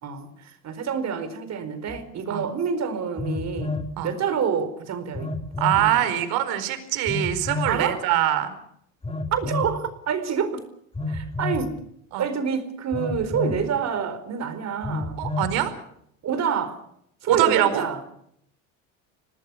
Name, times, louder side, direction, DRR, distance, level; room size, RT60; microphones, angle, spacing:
voice 1, 0.0-3.8 4.0-5.4 5.8-6.3 7.7-8.1 9.3-10.6 11.1-11.8 12.2-15.2 16.2-16.8 17.2-18.0, right 7 dB, 40° right, 10 dB, 4.6 m, -27 dB
Telephone, 1.9-2.0 3.2-3.9 5.2-5.9 7.1-7.8 9.0-9.7 10.9-11.7 12.9-13.6 14.8-15.6, left 2 dB, 15° left, 3.2 m, -29 dB
voice 2, 5.6-8.5 12.1-12.2 15.2-15.7 17.3-17.8, right 12 dB, 65° right, 11 dB, 4.8 m, -23 dB
26.5 x 19.0 x 7.0 m, 0.72 s
supercardioid pair, 100°, 40 cm